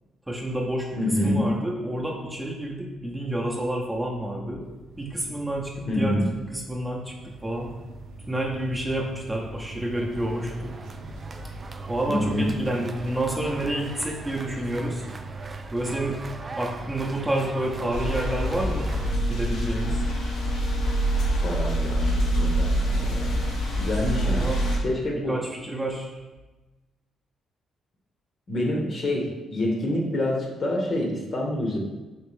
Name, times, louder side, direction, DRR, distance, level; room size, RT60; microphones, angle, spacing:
voice 1, 0.3-4.6 5.0-6.2 6.5-7.7 8.3-10.8 11.9-15.0 15.7-16.2 16.6-18.9 19.3-20.0 24.2-24.6 25.3-26.1, right 1 dB, 10° right, -2 dB, 0.8 m, -29 dB
voice 2, 1.0-1.4 5.9-6.3 12.1-12.5 21.4-23.4 23.7-24.5 24.8-25.4 28.5-31.8, left 1 dB, 45° left, -1 dB, 1.0 m, -27 dB
sound 1, 4.6-20.0, right 2 dB, 85° right, 0.6 m, -41 dB
sound 2, 10.1-19.2, right 3 dB, 30° right, 0.3 m, -42 dB
sound 3, 17.9-24.8, right 1 dB, 90° left, 0.9 m, -25 dB
4.3 x 3.2 x 3.2 m, 1.1 s
cardioid pair, 90°, 0 cm